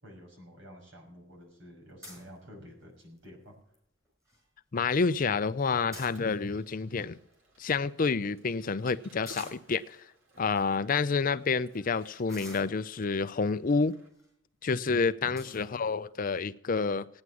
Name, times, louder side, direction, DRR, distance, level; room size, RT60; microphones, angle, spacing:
voice 1, 0.0-3.6 15.2-15.6, equal, 70° right, 6.0 m, -50 dB
sound 1, 2.0-2.4 3.0-3.3 3.7-3.8 4.0-4.4 5.7-6.6 7.3-7.4 7.6-7.8 9.2-9.7 10.4-10.5 11.0-11.2 12.3-13.1 13.9-14.3 14.7-14.8 15.4-15.7, equal, 15° right, 5.5 m, -47 dB
voice 2, 4.7-7.2 7.6-10.0 10.4-14.0 14.6-17.1, left 4 dB, 45° left, 0.5 m, -29 dB
Mechanisms, 6.0-14.1, right 2 dB, 90° right, 2.8 m, -58 dB
16.5 x 9.6 x 6.3 m
head